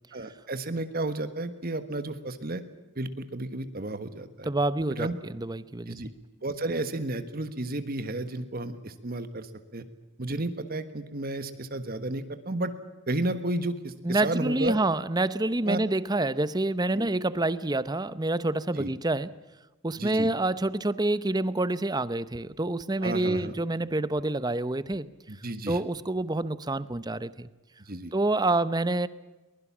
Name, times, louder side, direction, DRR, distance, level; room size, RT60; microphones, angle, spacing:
voice 1, 0.1-2.6 2.9-4.5 4.9-5.2 5.9-6.1 6.4-9.8 10.2-12.7 13.1-14.8 15.6-15.8 16.9-17.1 18.8-18.9 20.0-20.3 23.0-23.5 25.3-25.8 27.9-28.1, right 2 dB, 45° right, 10 dB, 1.4 m, -32 dB
voice 2, 4.4-6.0 14.0-19.3 19.8-25.1 25.7-27.5 28.1-29.1, right 2 dB, 20° right, 16 dB, 0.7 m, -27 dB
23.0 x 21.0 x 7.3 m, 1.1 s
head